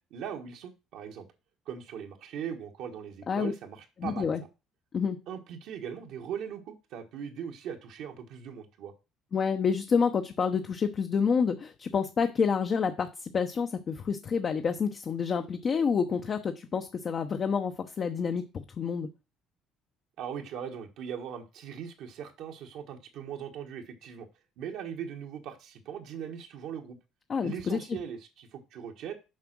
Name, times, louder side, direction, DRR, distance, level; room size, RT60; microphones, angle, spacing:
voice 1, 0.1-1.3 1.6-4.3 5.3-8.9 20.2-24.3 24.6-27.0 27.4-29.1, right 8 dB, 75° right, 2 dB, 1.5 m, -40 dB
voice 2, 4.0-4.4 4.9-5.2 9.3-19.1 27.3-27.8, left 6 dB, 40° left, 6 dB, 0.8 m, -28 dB
7.4 x 5.0 x 6.1 m, 0.28 s
cardioid pair, 105°, 0 cm